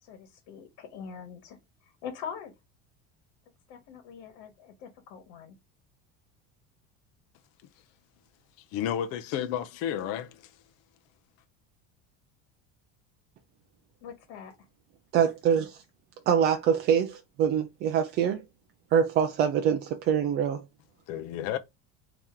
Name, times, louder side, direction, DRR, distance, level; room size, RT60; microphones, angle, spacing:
voice 1, 0.0-2.5 3.7-5.5 14.0-14.7, left 7 dB, 70° left, 1.3 m, -43 dB
voice 2, 8.7-10.3 21.1-21.6, left 10 dB, 45° left, 0.5 m, -31 dB
voice 3, 15.1-15.8 16.3-18.4 18.9-20.6, right 8 dB, 30° right, 0.4 m, -25 dB
4.3 x 2.9 x 3.7 m
cardioid pair, 180°, 33 cm